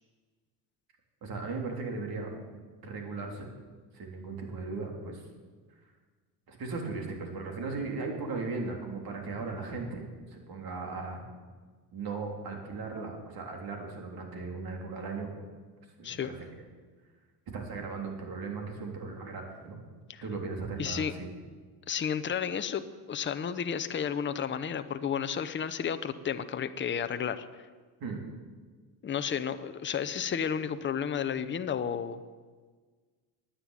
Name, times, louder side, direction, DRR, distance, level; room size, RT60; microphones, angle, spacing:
voice 1, 1.2-2.3 2.8-3.5 3.9-5.2 6.5-11.2 11.9-15.3 16.0-16.4 17.5-19.8 20.2-21.3 28.0-28.2, right 4 dB, 50° right, 2 dB, 3.5 m, -37 dB
voice 2, 20.8-21.1 21.9-22.8 23.1-27.5 29.0-32.2, left 8 dB, 25° left, 10 dB, 0.8 m, -32 dB
10.0 x 9.9 x 9.2 m, 1.5 s
supercardioid pair, 95°, 46 cm